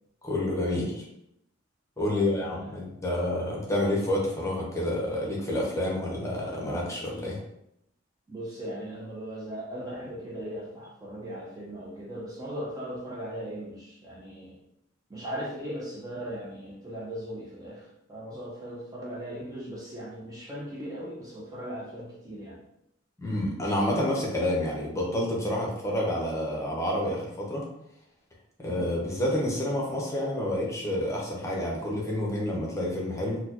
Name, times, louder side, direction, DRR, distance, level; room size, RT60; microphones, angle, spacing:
voice 1, 0.2-1.0 2.0-7.4 23.2-27.6 28.6-33.4, left 1 dB, 15° left, -3 dB, 0.8 m, -29 dB
voice 2, 2.1-2.8 8.3-14.6 15.1-22.6 28.6-28.9, equal, 20° right, -5 dB, 0.5 m, -38 dB
4.2 x 2.2 x 2.9 m, 0.78 s
head